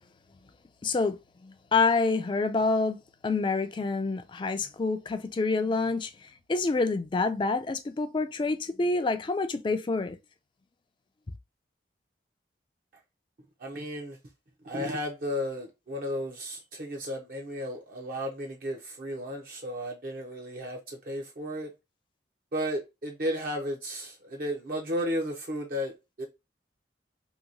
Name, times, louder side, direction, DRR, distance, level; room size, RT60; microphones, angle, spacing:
voice 1, 0.8-3.0 3.2-6.1 6.5-10.2, left 3 dB, 25° left, 0.3 m, -27 dB
voice 2, 13.6-14.2 14.6-21.7 22.5-26.3, equal, 50° right, 0.6 m, -34 dB
2.9 x 2.7 x 2.5 m
head